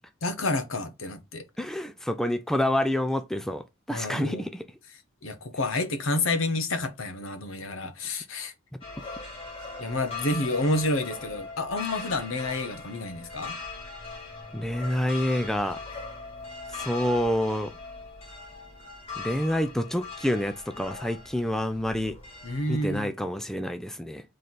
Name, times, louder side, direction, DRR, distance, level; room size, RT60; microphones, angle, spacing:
voice 1, 0.2-1.4 3.9-4.5 5.2-8.5 9.8-13.6 22.4-23.1, left 2 dB, 75° left, 0.9 m, -29 dB
voice 2, 1.6-4.7 14.5-15.8 16.7-17.7 19.2-22.2 22.7-24.2, left 1 dB, ahead, 0.3 m, -28 dB
sound 1, 8.8-23.0, left 4 dB, 30° left, 1.8 m, -40 dB
3.9 x 3.2 x 4.2 m
head